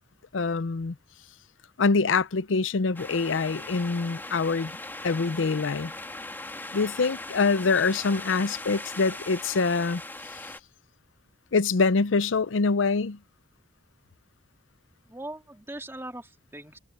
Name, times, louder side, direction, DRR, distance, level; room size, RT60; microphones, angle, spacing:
voice 1, 0.3-1.0 1.8-4.7 5.0-5.9 6.7-10.0 11.5-13.2, left 4 dB, 85° left, 0.6 m, -25 dB
sound 1, 2.9-10.6, left 2 dB, 10° left, 2.7 m, -39 dB
voice 2, 15.1-16.8, right 1 dB, 15° right, 3.1 m, -41 dB
head